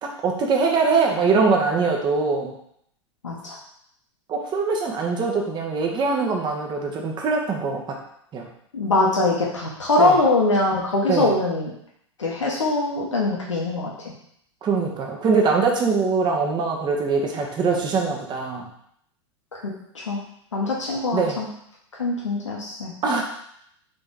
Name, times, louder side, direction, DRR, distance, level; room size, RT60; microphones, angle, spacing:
voice 1, 0.0-2.5 4.3-7.8 8.3-8.5 10.0-10.2 11.1-11.3 14.6-18.7 21.1-21.4 23.0-23.2, right 4 dB, 30° right, 1 dB, 0.9 m, -22 dB
voice 2, 3.2-3.5 8.7-11.7 12.2-13.9 19.5-20.2 20.5-21.5 22.0-22.9, left 2 dB, 85° left, -3 dB, 0.9 m, -22 dB
4.0 x 3.4 x 3.8 m, 0.71 s
figure-of-eight pair, 95°, 16 cm